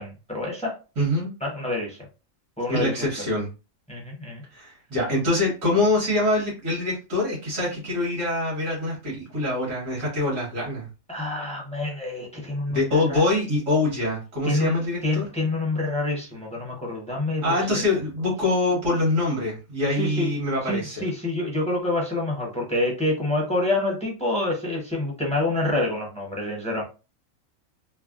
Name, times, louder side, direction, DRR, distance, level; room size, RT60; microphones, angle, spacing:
voice 1, 0.0-0.8 1.4-2.0 2.6-3.0 3.9-4.4 11.1-13.2 14.4-17.8 20.0-20.3 20.7-26.8, left 2 dB, 5° left, -2 dB, 0.7 m, -27 dB
voice 2, 1.0-1.3 2.7-3.5 4.5-10.9 12.7-15.3 17.4-21.1, left 2 dB, 75° right, -5 dB, 1.6 m, -24 dB
3.3 x 2.1 x 2.4 m, 0.31 s
omnidirectional pair, 1.4 m